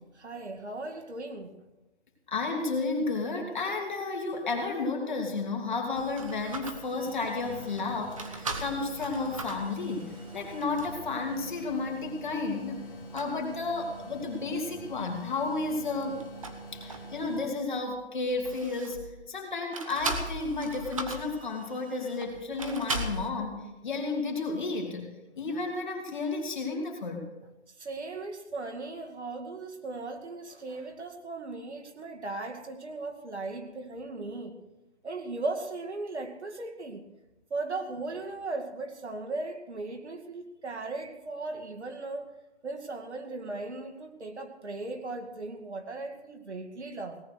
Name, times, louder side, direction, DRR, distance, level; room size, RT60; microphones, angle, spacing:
voice 1, 0.1-1.6 27.8-34.6 35.0-37.0 37.5-42.3 42.6-47.2, right 3 dB, 80° right, 3 dB, 2.3 m, -37 dB
voice 2, 2.3-12.8 13.1-16.2 16.7-25.1 25.4-27.2, left 3 dB, 45° left, 1 dB, 2.9 m, -32 dB
sound 1, 5.9-11.1 11.7-11.8 12.4-12.8 13.1-13.3 15.9-17.4 17.7-19.2 19.7-23.3, right 2 dB, 30° right, 1.0 m, -39 dB
sound 2, 7.0-17.4, right 2 dB, 20° left, 4.6 m, -45 dB
18.0 x 9.5 x 6.5 m, 1.0 s
hypercardioid pair, 175°, 34 cm